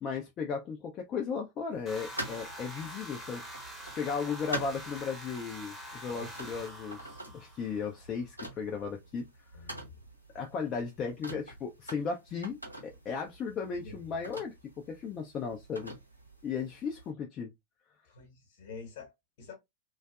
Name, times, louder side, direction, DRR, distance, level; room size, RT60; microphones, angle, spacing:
voice 1, 0.0-3.4 4.0-9.2 9.6-9.7 10.3-14.5 14.9-16.0 16.4-17.5, left 5 dB, 30° left, 0.4 m, -36 dB
sound 1, 1.7-17.1, right 1 dB, 90° right, 0.7 m, -46 dB
sound 2, 1.9-8.0, equal, 5° right, 0.7 m, -45 dB
voice 2, 6.1-6.5 9.5-10.0 13.8-14.0 18.0-19.5, left 4 dB, 55° left, 1.1 m, -48 dB
2.5 x 2.3 x 2.2 m
figure-of-eight pair, 90°, 0 cm